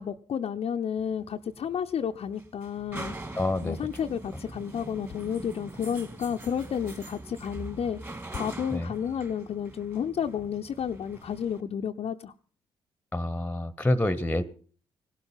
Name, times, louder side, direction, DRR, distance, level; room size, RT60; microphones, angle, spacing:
voice 1, 0.0-3.2 3.6-12.3, left 8 dB, 50° left, 4 dB, 0.8 m, -31 dB
sound 1, 1.0-11.6, right 2 dB, 20° right, 2.5 m, -43 dB
voice 2, 3.4-3.8 8.7-8.9 13.1-14.4, left 1 dB, 10° left, 18 dB, 1.2 m, -27 dB
17.5 x 12.5 x 5.7 m, 0.43 s
figure-of-eight pair, 40°, 13 cm